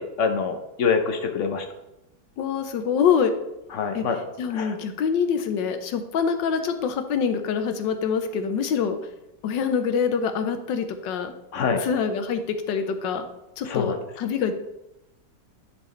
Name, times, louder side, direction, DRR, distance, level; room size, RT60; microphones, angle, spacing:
voice 1, 0.0-1.7 3.7-4.2 4.5-4.7 11.5-11.8 13.6-14.0, left 5 dB, 55° left, 6 dB, 0.9 m, -25 dB
voice 2, 2.4-3.3 3.9-4.0 4.4-9.0 9.4-11.3 11.8-12.4 12.7-13.3 13.6-14.5, left 6 dB, 90° left, 8 dB, 1.4 m, -25 dB
10.5 x 4.7 x 3.2 m, 0.91 s
omnidirectional pair, 1.9 m